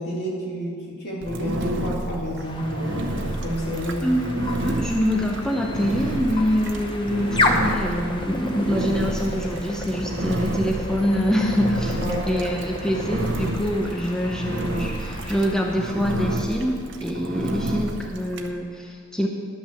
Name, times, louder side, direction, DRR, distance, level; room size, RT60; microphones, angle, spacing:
voice 1, 0.0-3.1 3.4-4.0 12.0-12.2, equal, 55° left, -4 dB, 2.8 m, -29 dB
Engine, 1.2-18.5, right 1 dB, 65° right, 0.8 m, -30 dB
sound 1, 2.4-15.8, left 2 dB, 25° left, 1.0 m, -31 dB
voice 2, 4.0-12.0 12.3-19.3, equal, 5° left, 0 dB, 0.6 m, -25 dB
11.5 x 5.9 x 6.9 m, 2.1 s
head